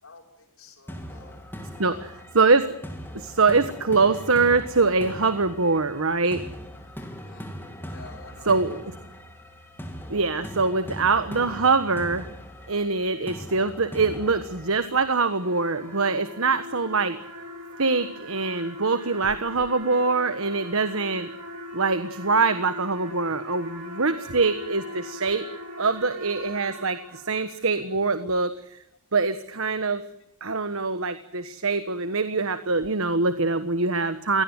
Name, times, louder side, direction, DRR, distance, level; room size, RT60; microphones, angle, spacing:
voice 1, 0.0-1.5 1.8-2.3 7.2-7.5 7.9-9.3 20.4-20.8, left 4 dB, 60° left, 1 dB, 6.2 m, -50 dB
sound 1, 0.9-15.8, equal, 10° left, 3.4 m, -40 dB
voice 2, 1.8-2.6 3.1-6.4 8.5-8.8 10.1-12.3 12.7-17.2 17.8-21.3 21.7-25.4 25.8-28.8 29.1-30.0 30.4-34.4, right 4 dB, 65° right, 11 dB, 1.4 m, -24 dB
sound 2, 15.2-27.8, left 1 dB, 85° right, 6.1 m, -40 dB
23.5 x 18.0 x 9.3 m, 0.74 s
head